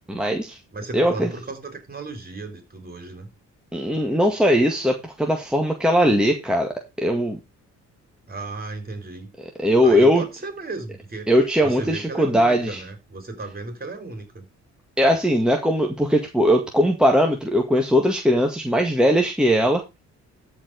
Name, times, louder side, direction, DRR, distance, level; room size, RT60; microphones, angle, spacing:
voice 1, 0.1-0.6 0.9-1.3 3.7-7.4 9.6-10.2 11.3-12.8 15.0-19.8, equal, 5° right, 1.9 m, -20 dB
voice 2, 0.7-3.3 8.3-9.3 9.8-11.3 11.6-14.5, right 3 dB, 30° right, 4.6 m, -35 dB
13.5 x 5.0 x 5.2 m
cardioid pair, 90°, 30 cm